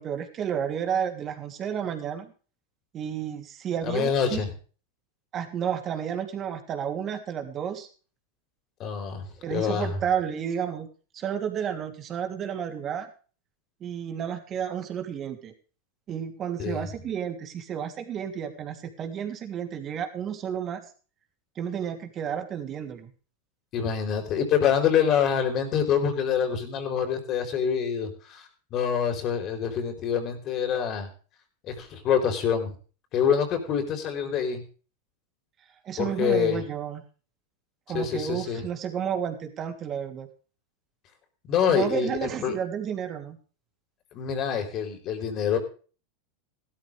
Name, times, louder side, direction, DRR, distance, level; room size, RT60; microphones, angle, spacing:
voice 1, 0.0-2.3 2.9-4.4 5.3-7.9 9.4-10.9 11.1-13.1 13.8-15.5 16.1-20.9 21.5-23.1 35.8-37.0 37.9-40.3 41.7-43.4, right 8 dB, 35° right, 6 dB, 3.1 m, -31 dB
voice 2, 3.8-4.5 8.8-10.0 16.6-16.9 23.7-31.1 31.7-32.7 33.1-34.6 36.0-36.6 37.9-38.7 41.5-42.5 44.1-45.6, left 7 dB, 40° left, 6 dB, 4.4 m, -26 dB
16.0 x 13.0 x 3.5 m, 0.38 s
hypercardioid pair, 110°, 0 cm